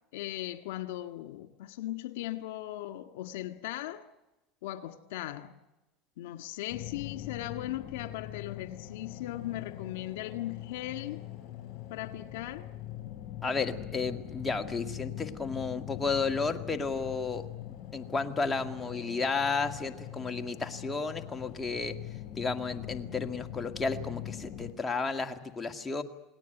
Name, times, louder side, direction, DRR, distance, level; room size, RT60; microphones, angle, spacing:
voice 1, 0.1-4.0 4.6-5.5 6.2-11.2 11.9-12.7, left 15 dB, 80° left, 1.9 m, -38 dB
sound 1, 6.7-24.7, left 12 dB, 55° left, 5.5 m, -42 dB
voice 2, 13.4-17.5 17.9-21.9 22.3-26.0, left 4 dB, 15° left, 2.0 m, -32 dB
28.5 x 19.5 x 9.3 m
supercardioid pair, 120°, 0 cm